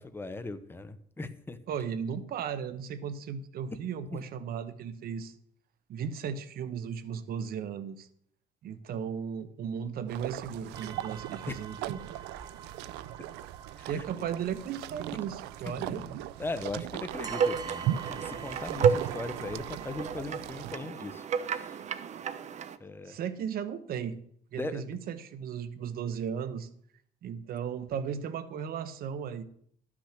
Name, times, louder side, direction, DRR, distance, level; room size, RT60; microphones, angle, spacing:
voice 1, 0.0-1.6 4.1-4.3 11.5-11.6 13.8-14.0 15.7-21.9 22.8-23.2 24.6-24.9, left 3 dB, 15° left, 11 dB, 0.8 m, -39 dB
voice 2, 1.7-5.3 5.9-8.1 8.6-12.0 13.9-16.1 23.1-24.2 24.5-26.7 27.2-29.4, right 7 dB, 60° right, 12 dB, 1.0 m, -36 dB
sound 1, 10.1-20.8, right 12 dB, 90° right, 0.4 m, -38 dB
sound 2, 10.7-20.1, right 6 dB, 25° right, 1.0 m, -47 dB
sound 3, 17.1-22.8, right 6 dB, 45° right, 0.6 m, -32 dB
12.0 x 6.2 x 5.9 m, 0.65 s
cardioid pair, 110°, 17 cm